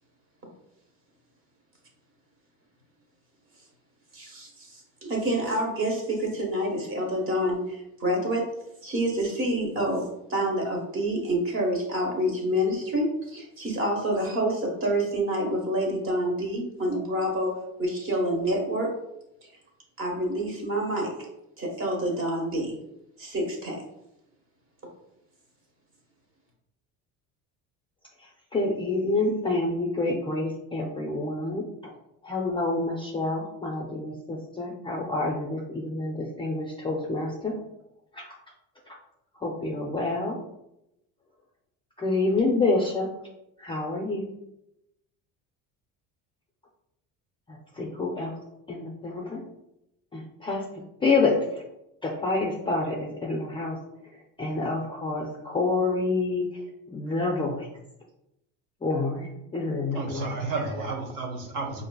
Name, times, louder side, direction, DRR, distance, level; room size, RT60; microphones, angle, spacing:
voice 1, 4.1-8.4 8.8-18.9 20.0-21.1 21.6-22.8 23.2-23.8, right 1 dB, 35° right, 1.2 m, -27 dB
voice 2, 28.5-31.6 32.2-37.5 38.2-38.3 39.4-40.4 42.0-43.1 43.6-44.3 47.8-48.3 48.7-49.4 50.1-50.6 51.0-51.4 52.0-53.8 54.4-56.5 56.9-57.7 58.8-60.3, left 3 dB, 15° left, 0.4 m, -27 dB
voice 3, 59.9-61.9, right 3 dB, 60° right, 0.8 m, -32 dB
5.2 x 2.6 x 2.2 m
cardioid pair, 140°, 36 cm